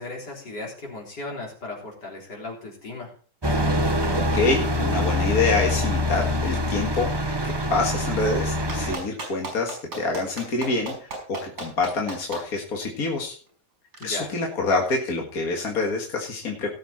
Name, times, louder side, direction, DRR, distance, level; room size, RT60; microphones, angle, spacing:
voice 1, 0.0-3.1 14.0-14.3, left 2 dB, 80° left, -1 dB, 4.3 m, -36 dB
sound 1, 3.4-9.0, left 1 dB, 20° right, 0.9 m, -24 dB
voice 2, 4.1-7.1 7.4-13.4 14.0-16.7, left 3 dB, 60° left, 0 dB, 2.3 m, -26 dB
Clapping, 8.7-12.4 13.9-14.0, right 2 dB, 60° right, 5.6 m, -34 dB
17.5 x 7.3 x 4.3 m, 0.42 s
omnidirectional pair, 1.8 m